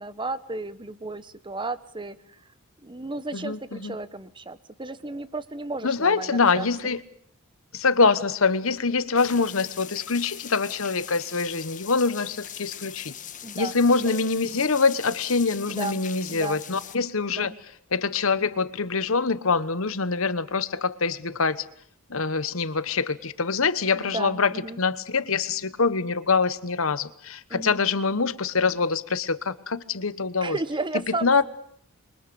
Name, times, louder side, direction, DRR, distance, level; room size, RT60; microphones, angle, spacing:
voice 1, 0.0-2.4 2.8-6.7 13.4-14.2 15.7-16.0 16.3-16.6 17.3-17.6 24.0-24.8 27.5-27.8 30.4-31.5, right 2 dB, 20° right, 1.2 m, -34 dB
voice 2, 3.3-4.0 5.8-7.0 7.7-13.1 13.5-17.5 17.9-21.6 22.1-30.6 31.2-31.4, left 4 dB, 65° left, 1.2 m, -24 dB
sound 1, 9.2-17.0, left 10 dB, 35° left, 1.3 m, -41 dB
27.5 x 23.5 x 7.0 m
head